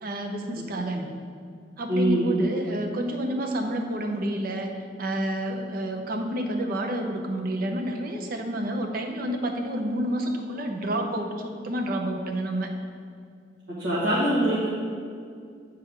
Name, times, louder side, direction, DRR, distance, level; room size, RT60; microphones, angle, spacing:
voice 1, 0.0-1.0 1.8-4.7 5.0-12.7, right 1 dB, 55° right, 3 dB, 0.7 m, -29 dB
voice 2, 1.9-2.3 13.8-14.7, right 1 dB, 80° right, -10 dB, 1.6 m, -23 dB
8.4 x 4.5 x 3.7 m, 2.3 s
head